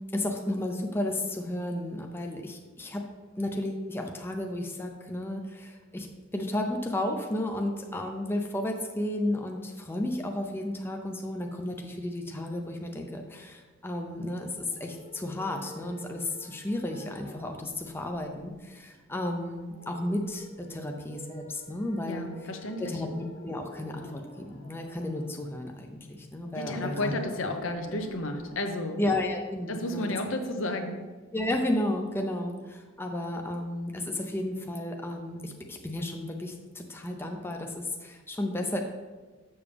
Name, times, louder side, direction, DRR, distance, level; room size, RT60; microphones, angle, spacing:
voice 1, 0.1-3.0 3.4-6.1 6.3-22.3 22.8-27.1 29.0-30.2 31.3-38.8, left 1 dB, 10° left, 2 dB, 0.5 m, -33 dB
sound 1, 14.6-29.5, equal, 35° left, 1.2 m, -50 dB
voice 2, 22.0-23.0 26.6-29.0 29.7-31.0, left 1 dB, 70° left, 5 dB, 0.9 m, -32 dB
7.0 x 6.9 x 3.4 m, 1.3 s
head